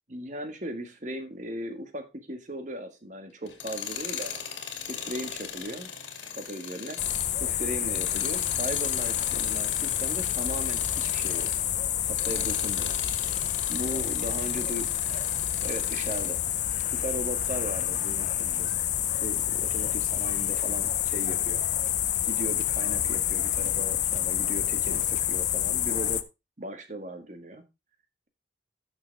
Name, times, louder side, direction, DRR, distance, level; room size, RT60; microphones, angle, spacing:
voice 1, 0.1-4.4 4.9-5.9 6.3-7.0 7.4-11.5 12.0-13.0 13.7-14.9 15.6-16.4 16.8-18.7 19.2-21.6 22.2-26.2 26.6-27.6, right 1 dB, 40° right, 7 dB, 1.6 m, -37 dB
Tools, 3.5-11.7 12.1-16.3, left 7 dB, 85° left, 2.1 m, -38 dB
sound 1, 7.0-26.2, left 11 dB, 40° left, 0.5 m, -28 dB
12.0 x 6.6 x 3.4 m, 0.25 s
head